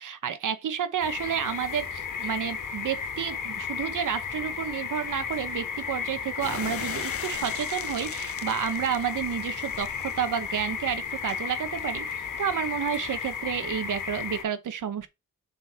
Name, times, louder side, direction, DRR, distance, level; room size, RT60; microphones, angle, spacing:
voice 1, 0.0-15.1, right 8 dB, 80° right, 0.9 m, -30 dB
sound 1, 1.0-14.4, left 6 dB, 85° left, 1.5 m, -34 dB
sound 2, 6.4-13.4, left 9 dB, 50° left, 0.4 m, -42 dB
7.1 x 3.9 x 4.4 m
wide cardioid pair, 165°, 31 cm